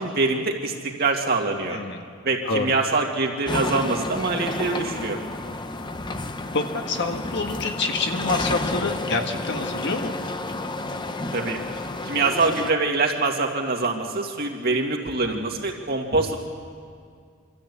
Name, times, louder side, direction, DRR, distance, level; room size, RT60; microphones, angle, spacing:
voice 1, 0.0-1.8 2.2-5.2 11.3-11.6 12.0-16.4, right 3 dB, 50° right, 1 dB, 2.2 m, -24 dB
voice 2, 1.7-2.0 2.4-2.7 6.5-10.1, left 3 dB, 60° left, 5 dB, 1.5 m, -27 dB
sound 1, 3.5-12.7, left 2 dB, 20° left, 0.8 m, -31 dB
25.5 x 13.5 x 8.5 m, 2.2 s
head